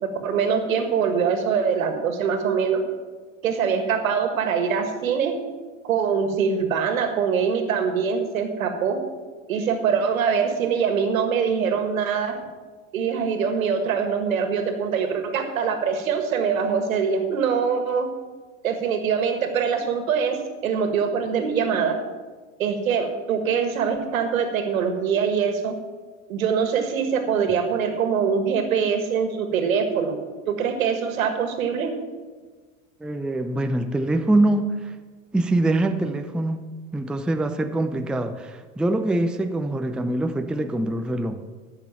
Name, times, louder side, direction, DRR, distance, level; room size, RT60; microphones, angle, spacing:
voice 1, 0.0-2.8 3.4-5.3 5.8-9.0 9.5-12.4 12.9-18.1 18.6-22.0 22.6-25.8 26.3-30.2 30.5-31.9, right 6 dB, 85° right, 6 dB, 1.8 m, -23 dB
voice 2, 33.0-34.9 35.3-36.6 36.9-41.4, right 2 dB, ahead, 7 dB, 0.5 m, -24 dB
13.5 x 6.4 x 5.9 m, 1.4 s
hypercardioid pair, 100°, 40 cm